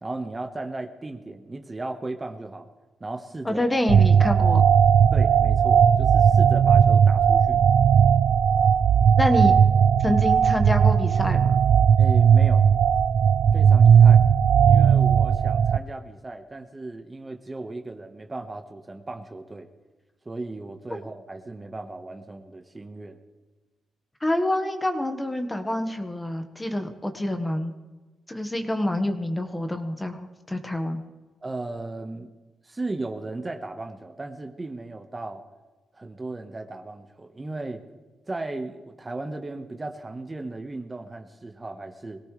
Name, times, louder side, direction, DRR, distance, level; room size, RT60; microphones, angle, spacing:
voice 1, 0.0-2.7 3.0-3.8 5.1-7.6 12.0-12.7 13.5-14.2 14.6-19.7 20.2-23.2 31.4-32.3 32.6-35.4 35.9-37.8 38.3-42.2, right 2 dB, 20° right, 6 dB, 1.3 m, -36 dB
voice 2, 3.4-4.6 9.2-9.6 10.0-11.6 20.9-21.0 24.2-27.7 28.3-31.0, left 1 dB, 15° left, 6 dB, 1.5 m, -26 dB
sound 1, 3.9-15.8, right 7 dB, 70° right, 0.4 m, -17 dB
22.0 x 17.5 x 3.3 m, 1.2 s
cardioid pair, 90°, 0 cm